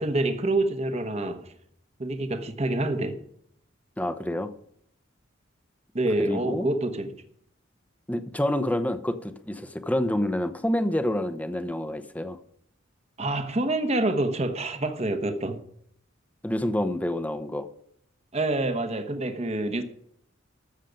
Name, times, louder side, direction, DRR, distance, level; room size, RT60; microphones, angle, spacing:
voice 1, 0.0-1.5 2.0-3.2 5.9-7.1 13.2-15.6 18.3-19.8, right 2 dB, 30° right, 1.0 m, -27 dB
voice 2, 4.0-4.5 6.2-6.7 8.1-12.4 16.4-17.7, left 1 dB, 10° left, 0.8 m, -28 dB
13.5 x 7.4 x 5.2 m
head